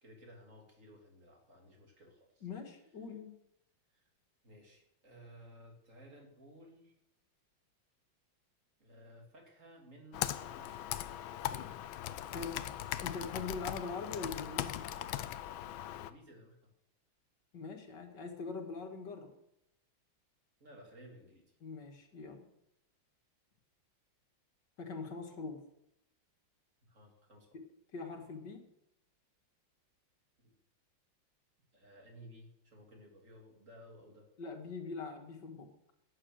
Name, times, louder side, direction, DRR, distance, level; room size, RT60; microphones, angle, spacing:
voice 1, 0.0-2.5 3.9-4.1 4.4-6.9 8.8-11.6 15.9-16.6 20.6-21.4 26.8-27.5 30.4-30.5 31.7-34.3, equal, 40° right, 1 dB, 3.6 m, -57 dB
voice 2, 2.4-3.3 12.3-12.6 13.0-14.9 17.5-19.3 21.6-22.5 24.8-25.6 27.5-27.7 27.9-28.6 34.4-35.7, left 4 dB, 60° left, 4 dB, 2.5 m, -42 dB
Computer keyboard, 10.1-16.1, left 12 dB, 80° left, 1.5 m, -39 dB
13.5 x 10.0 x 6.6 m, 0.80 s
omnidirectional pair, 2.2 m